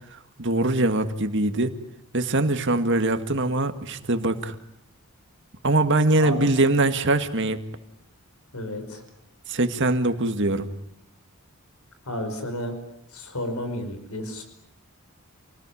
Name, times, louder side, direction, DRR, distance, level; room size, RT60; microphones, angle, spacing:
voice 1, 0.1-1.8 2.1-4.6 5.6-7.6 9.5-10.7, right 2 dB, 55° right, 8 dB, 2.0 m, -22 dB
voice 2, 8.5-9.0 12.0-12.7 13.1-14.4, left 1 dB, 85° left, 7 dB, 5.3 m, -32 dB
28.5 x 19.5 x 10.0 m, 0.79 s
head